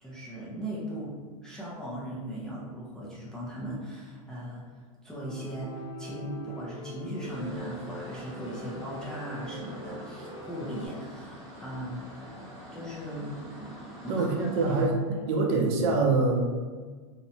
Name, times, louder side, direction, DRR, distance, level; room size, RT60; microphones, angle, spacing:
voice 1, 0.0-12.0 12.7-13.3 13.6-13.7 14.0-14.3 14.7-14.8 15.1-15.2, equal, 5° left, -7 dB, 0.3 m, -38 dB
Piano, 5.2-10.9, equal, 55° left, 0.8 m, -43 dB
sound 1, 7.2-14.8, equal, 20° right, 1.0 m, -46 dB
voice 2, 14.1-15.0 15.3-16.4, right 3 dB, 50° right, 1 dB, 0.5 m, -24 dB
2.7 x 2.1 x 2.6 m, 1.4 s
supercardioid pair, 150°, 18 cm